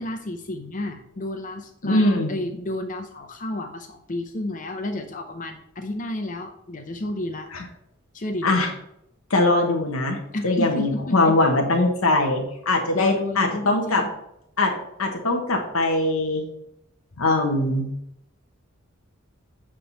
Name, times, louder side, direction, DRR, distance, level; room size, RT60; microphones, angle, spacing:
voice 1, 0.0-7.5 8.1-8.5 10.3-11.4 12.9-14.1, left 1 dB, 40° left, 6 dB, 0.7 m, -31 dB
voice 2, 1.8-2.3 7.5-7.6 8.4-8.7 9.3-10.2 10.4-14.0 14.6-14.7 15.0-16.5 17.2-17.9, left 2 dB, 85° left, 2 dB, 1.2 m, -21 dB
8.5 x 3.7 x 5.5 m, 0.81 s
head